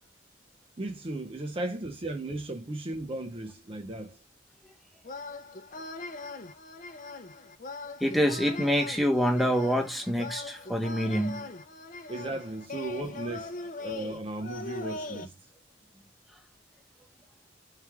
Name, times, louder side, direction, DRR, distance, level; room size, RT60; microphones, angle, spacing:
voice 1, 0.8-4.2 12.1-15.3, right 2 dB, 30° right, 0.5 m, -36 dB
sound 1, 5.0-15.3, left 2 dB, 40° left, 0.6 m, -41 dB
voice 2, 8.0-11.5, equal, ahead, 0.8 m, -26 dB
4.7 x 3.2 x 3.4 m
head